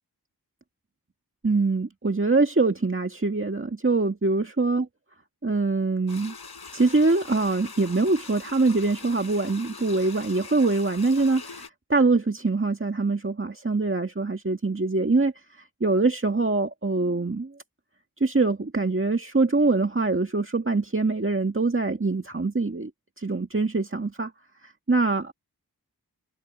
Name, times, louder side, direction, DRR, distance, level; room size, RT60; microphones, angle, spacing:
voice 1, 1.4-4.9 5.4-6.3 6.7-11.6 11.9-15.3 15.8-17.5 18.2-22.9 23.2-24.3 24.6-25.3, right 3 dB, 35° right, 1.9 m, -24 dB
sound 1, 6.1-11.7, left 4 dB, 85° left, 4.4 m, -42 dB
cardioid pair, 40°, 38 cm